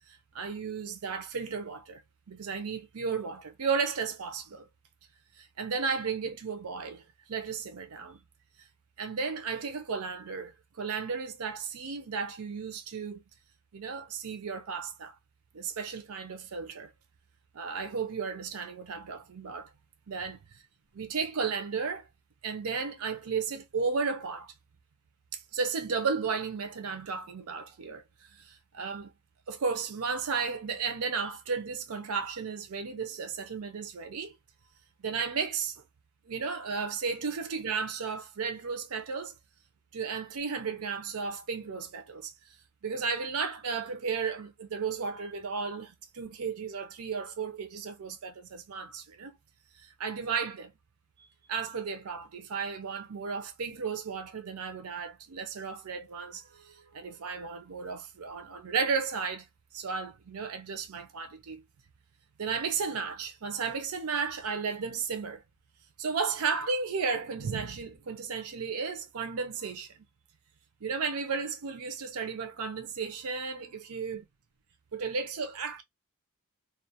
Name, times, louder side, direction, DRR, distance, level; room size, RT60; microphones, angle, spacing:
voice 1, 0.1-2.0 2.3-4.7 5.4-8.2 9.0-13.2 13.7-15.2 15.5-16.9 17.5-19.7 20.1-20.4 21.0-22.1 22.4-24.5 25.3-29.1 29.5-34.4 35.0-35.8 36.3-39.3 39.9-42.5 42.8-49.4 49.8-50.7 51.5-59.5 59.7-61.6 62.4-65.4 66.0-70.0 70.8-74.2 74.9-75.8, right 5 dB, 70° right, 0.6 m, -34 dB
2.4 x 2.2 x 2.7 m
head